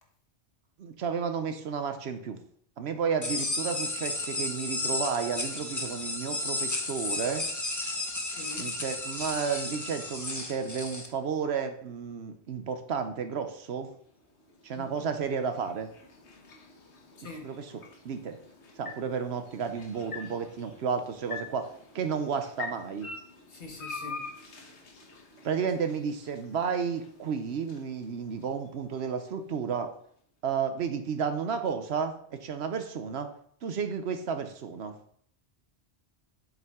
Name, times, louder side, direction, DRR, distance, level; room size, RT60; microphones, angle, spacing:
voice 1, 0.8-2.4 2.8-7.4 8.6-13.9 14.6-15.9 17.4-18.4 18.8-23.1 25.4-29.9 30.4-33.3 33.6-35.0, right 6 dB, 70° right, 8 dB, 1.0 m, -32 dB
sound 1, 3.2-11.1, left 2 dB, 20° left, 0.7 m, -33 dB
voice 2, 8.2-8.7 14.7-15.0 17.2-17.5 23.5-24.2, left 3 dB, 60° left, 2 dB, 1.5 m, -44 dB
sound 2, 13.7-29.9, left 4 dB, 85° left, 1.5 m, -46 dB
7.7 x 5.5 x 3.6 m, 0.62 s
omnidirectional pair, 1.1 m